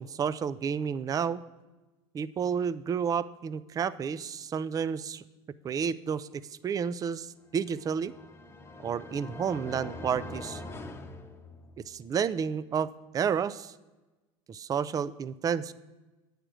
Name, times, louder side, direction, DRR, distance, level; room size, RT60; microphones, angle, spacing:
voice 1, 0.0-1.4 2.1-5.2 5.6-8.1 8.8-10.6 11.9-13.7 14.5-15.7, right 7 dB, 25° right, 17 dB, 0.4 m, -31 dB
sound 1, 7.6-12.0, left 2 dB, 15° left, 0.9 m, -43 dB
8.9 x 5.0 x 6.1 m, 1.1 s
hypercardioid pair, 90°, 15 cm